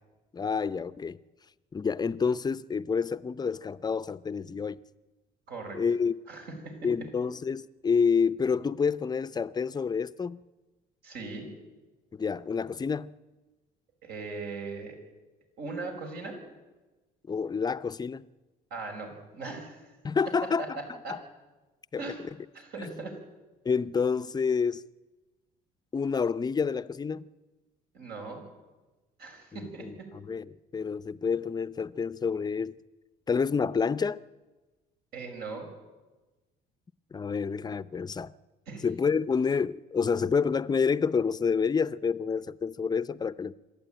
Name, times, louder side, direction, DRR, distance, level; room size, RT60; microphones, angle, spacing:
voice 1, 0.3-1.2 1.7-4.8 5.7-6.1 6.8-10.4 12.1-13.1 17.3-18.3 20.0-20.8 21.1-21.2 21.9-22.0 22.8-22.9 23.6-24.8 25.9-27.2 29.5-29.9 30.2-30.5 30.7-32.7 33.3-34.2 37.1-38.3 38.8-43.6, left 5 dB, 25° left, 0.6 m, -28 dB
voice 2, 5.5-5.8 6.3-6.9 11.0-11.5 14.0-15.0 15.6-16.4 18.7-19.8 20.6-21.2 22.0-22.2 22.5-23.2 27.9-28.4 29.2-30.1 35.1-35.7 38.7-38.9, right 3 dB, 70° right, 6.1 m, -39 dB
26.5 x 12.0 x 9.1 m
cardioid pair, 110°, 17 cm